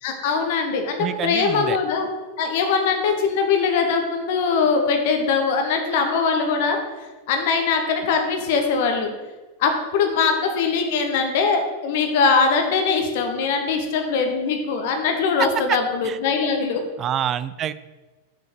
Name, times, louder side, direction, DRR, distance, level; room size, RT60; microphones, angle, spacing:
voice 1, 0.0-2.1 2.4-9.1 9.6-16.8, left 5 dB, 50° left, 4 dB, 1.0 m, -22 dB
voice 2, 1.0-1.8 15.4-15.8 16.0-16.2 17.0-17.7, right 10 dB, 30° right, 15 dB, 0.3 m, -26 dB
6.1 x 5.1 x 6.7 m, 1.2 s
figure-of-eight pair, 90°, 0 cm